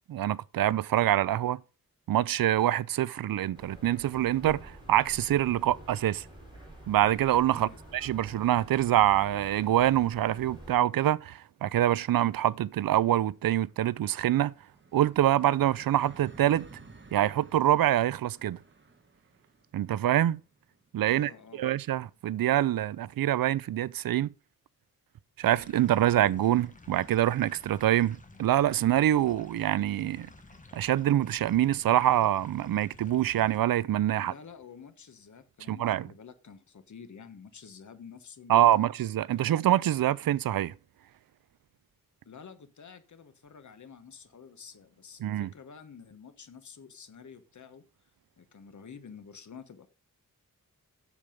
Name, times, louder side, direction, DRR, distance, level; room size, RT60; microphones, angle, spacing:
voice 1, 0.1-1.6 2.1-6.2 6.9-14.5 14.9-16.7 17.1-18.6 19.7-20.4 20.9-24.3 25.4-30.3 30.7-34.3 35.7-36.1 38.5-40.7 45.2-45.5, right 12 dB, 90° right, 0.5 m, -25 dB
sound 1, 3.5-10.7, right 1 dB, 15° right, 4.2 m, -48 dB
sound 2, 11.4-22.8, right 3 dB, 35° right, 1.2 m, -55 dB
voice 2, 21.1-21.7 34.2-38.9 39.3-39.6 42.2-47.8 48.4-49.9, left 6 dB, 60° left, 1.2 m, -49 dB
sound 3, 25.4-33.6, left 2 dB, 25° left, 1.3 m, -52 dB
8.3 x 7.0 x 5.2 m
wide cardioid pair, 140°, 34 cm